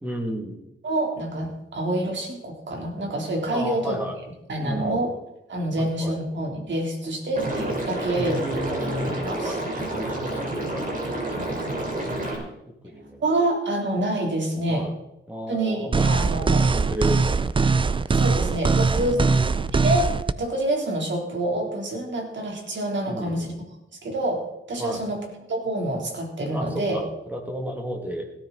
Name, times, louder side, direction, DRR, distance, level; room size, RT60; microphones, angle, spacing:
voice 1, 0.0-0.6 3.5-4.2 4.6-5.0 5.8-6.2 8.2-12.1 12.8-13.2 14.7-14.9 15.3-17.7 19.1-19.7 23.1-23.5 24.8-25.1 26.5-28.3, equal, 5° right, 2 dB, 2.6 m, -33 dB
voice 2, 0.8-4.0 4.5-5.1 5.5-8.4 9.1-9.6 13.2-14.9 15.5-16.7 18.1-19.2 19.8-23.5 24.0-27.0, right 1 dB, 60° right, 1 dB, 3.7 m, -27 dB
Liquid, 7.4-12.4, right 1 dB, 40° right, 4.4 m, -29 dB
sound 1, 15.9-20.3, right 4 dB, 25° right, 0.5 m, -21 dB
17.0 x 13.0 x 4.2 m, 0.85 s
wide cardioid pair, 115°, 21 cm